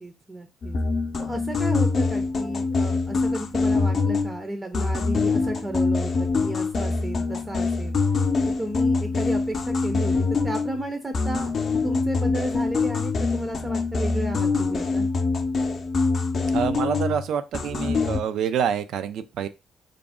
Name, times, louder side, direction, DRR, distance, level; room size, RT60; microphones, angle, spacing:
voice 1, 0.0-0.8 1.2-7.9 8.6-10.1 10.4-11.5 11.8-15.1, right 1 dB, 25° right, 0.5 m, -33 dB
sound 1, 0.6-4.4 4.7-10.9 11.1-17.3 17.5-18.2, left 4 dB, 55° left, 0.5 m, -24 dB
voice 2, 16.5-19.5, right 8 dB, 80° right, 0.3 m, -27 dB
2.5 x 2.0 x 3.5 m
cardioid pair, 75°, 0 cm